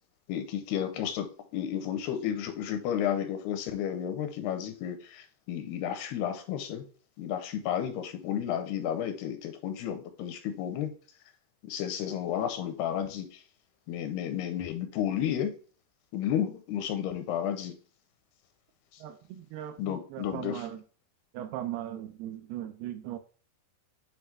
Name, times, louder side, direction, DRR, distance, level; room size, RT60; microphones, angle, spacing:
voice 1, 0.3-6.9 7.2-11.0 11.6-13.4 13.9-15.6 16.1-17.8 19.8-20.7, left 9 dB, 80° left, 2.6 m, -32 dB
voice 2, 19.0-20.8 21.3-23.2, right 12 dB, 80° right, 2.4 m, -38 dB
9.1 x 3.3 x 3.2 m
omnidirectional pair, 4.7 m